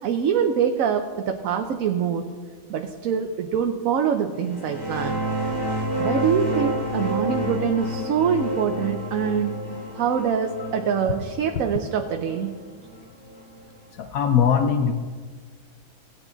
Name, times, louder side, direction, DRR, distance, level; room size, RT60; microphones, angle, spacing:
voice 1, 0.0-2.3 2.7-5.2 6.0-9.5 10.0-12.5, right 7 dB, 75° right, 5 dB, 1.1 m, -24 dB
sound 1, 4.4-13.8, equal, 55° left, 3.0 m, -29 dB
voice 2, 14.0-14.9, left 7 dB, 80° left, 7 dB, 1.1 m, -20 dB
17.0 x 8.6 x 3.9 m, 1.5 s
omnidirectional pair, 1.5 m